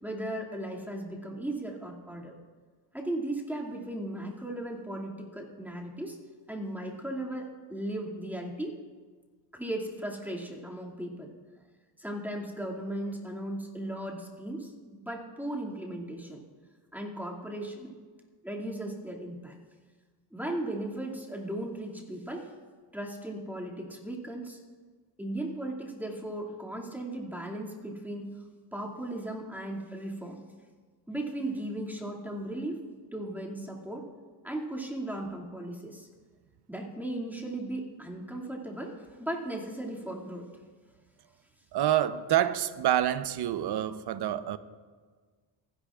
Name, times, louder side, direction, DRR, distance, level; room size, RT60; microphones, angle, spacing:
voice 1, 0.0-2.3 2.9-6.2 6.5-8.7 9.5-11.3 12.0-16.4 16.9-17.9 18.4-19.6 20.3-22.5 22.9-24.6 25.2-28.3 28.7-30.4 31.1-32.8 33.1-34.1 34.4-36.1 36.7-40.5, right 1 dB, 5° right, 2.4 m, -36 dB
voice 2, 41.7-44.6, right 11 dB, 55° right, 0.9 m, -27 dB
29.0 x 10.5 x 2.5 m
supercardioid pair, 80°, 47 cm